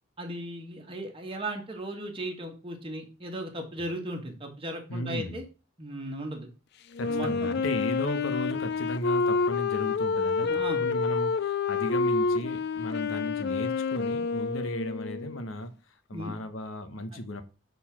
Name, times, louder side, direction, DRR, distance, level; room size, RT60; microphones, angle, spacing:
voice 1, 0.2-5.5 5.8-6.5 7.1-7.5 10.4-10.9 16.1-16.4, right 1 dB, 25° right, 1.5 m, -36 dB
voice 2, 4.9-5.4 7.0-17.4, equal, 75° left, 1.1 m, -35 dB
Wind instrument woodwind instrument, 6.9-15.5, left 4 dB, 55° left, 0.5 m, -28 dB
6.8 x 4.1 x 5.8 m
head